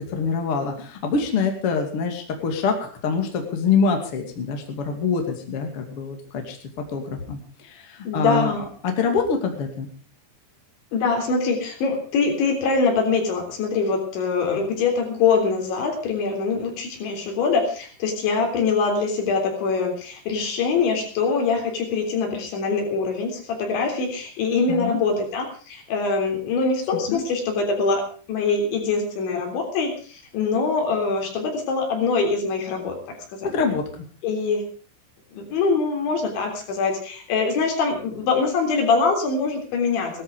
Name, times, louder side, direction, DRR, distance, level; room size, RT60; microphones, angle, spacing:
voice 1, 0.1-6.6 6.9-8.5 8.8-9.9 24.7-25.0 26.9-27.2 33.5-33.8, left 5 dB, 35° left, 4 dB, 2.6 m, -25 dB
voice 2, 8.1-8.6 10.9-33.7 34.2-34.7 35.3-40.2, left 4 dB, 70° left, 3 dB, 5.9 m, -23 dB
17.5 x 13.0 x 5.1 m, 0.40 s
omnidirectional pair, 5.4 m